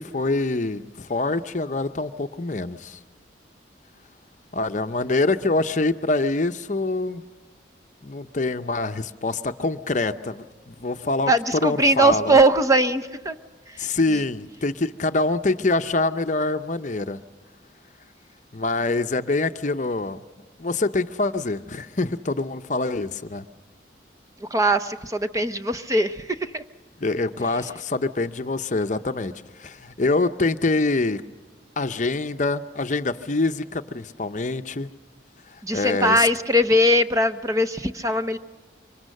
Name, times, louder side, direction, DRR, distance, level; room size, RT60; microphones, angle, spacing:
voice 1, 0.0-3.0 4.5-7.2 8.0-11.3 11.6-12.4 13.8-17.2 18.5-20.2 20.6-23.4 27.0-29.3 29.6-31.2 31.8-34.9 35.7-36.2, left 2 dB, 40° left, 9 dB, 0.7 m, -25 dB
voice 2, 11.3-13.4 13.7-14.2 24.4-26.6 35.6-38.4, right 1 dB, 15° right, 10 dB, 0.7 m, -21 dB
26.0 x 24.5 x 6.6 m, 1.3 s
head